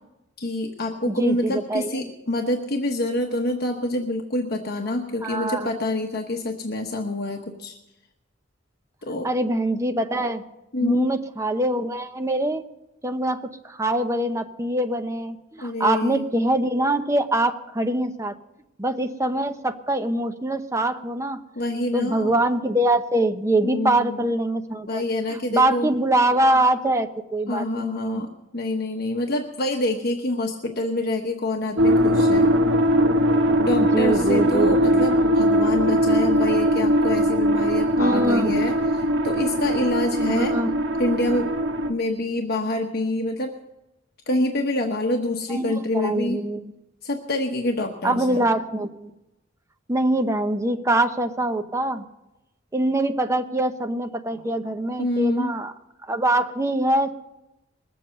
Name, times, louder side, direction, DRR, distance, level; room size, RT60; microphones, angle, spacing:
voice 1, 0.4-7.8 9.0-9.3 10.7-11.1 15.6-16.2 21.6-22.3 23.6-24.2 24.9-25.9 27.5-28.3 28.5-32.5 33.6-40.5 41.0-41.5 41.9-43.5 44.3-46.4 47.0-48.5 55.0-55.5, left 1 dB, 55° left, 3 dB, 1.1 m, -26 dB
voice 2, 1.0-2.1 5.2-5.7 9.2-10.4 10.8-12.6 13.0-18.3 18.8-21.4 21.9-25.0 25.3-28.2 33.8-35.0 38.0-38.6 40.3-40.7 45.5-46.6 48.0-49.1 49.9-52.0 52.7-55.7 56.1-57.1, right 1 dB, 15° right, 7 dB, 0.8 m, -24 dB
sound 1, 31.8-41.9, equal, 70° right, 1.1 m, -20 dB
20.5 x 7.6 x 6.6 m, 0.94 s
head